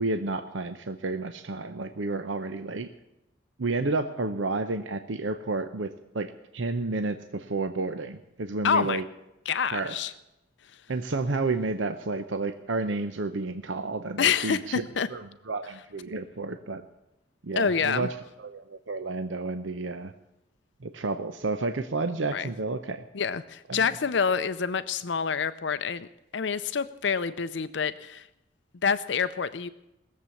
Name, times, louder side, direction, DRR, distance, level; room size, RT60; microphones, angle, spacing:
voice 1, 0.0-2.9 3.6-9.0 9.7-10.0 10.9-16.8 17.4-20.1 20.8-23.1 23.7-23.8, right 3 dB, 85° right, 9 dB, 0.8 m, -31 dB
voice 2, 8.6-9.0 9.5-10.1 10.7-10.8 14.2-15.1 17.6-18.1 22.3-22.5 23.1-26.1 26.3-28.3 28.8-29.7, left 6 dB, 70° left, 13 dB, 0.6 m, -27 dB
19.5 x 7.5 x 8.3 m, 0.93 s
head